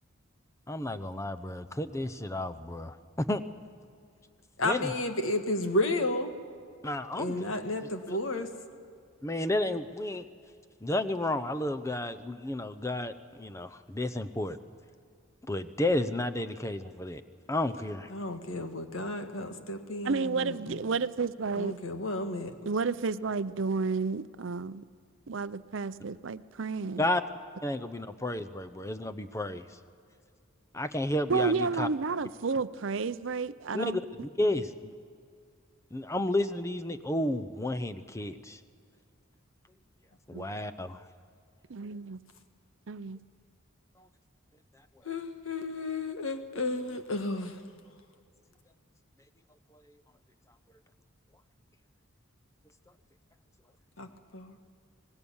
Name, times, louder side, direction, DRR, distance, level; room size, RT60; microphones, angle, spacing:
voice 1, 0.7-3.4 4.6-4.9 6.8-7.5 8.1-8.2 9.2-10.2 10.8-14.6 15.5-17.2 17.5-18.1 27.0-27.2 27.6-29.6 30.7-31.9 33.7-34.9 35.9-38.6 40.3-41.0, left 1 dB, 15° left, 10 dB, 0.7 m, -32 dB
voice 2, 4.6-6.4 7.1-8.5 18.1-20.8 21.6-22.5 45.0-47.6 54.0-54.1 54.3-54.6, left 2 dB, 70° left, 7 dB, 1.7 m, -32 dB
voice 3, 20.0-21.8 22.7-24.8 25.3-27.1 31.3-34.0 34.4-34.5 40.3-40.5 41.7-42.2 42.9-43.2, right 4 dB, 60° right, 15 dB, 0.6 m, -31 dB
25.5 x 19.5 x 7.2 m, 2.2 s
head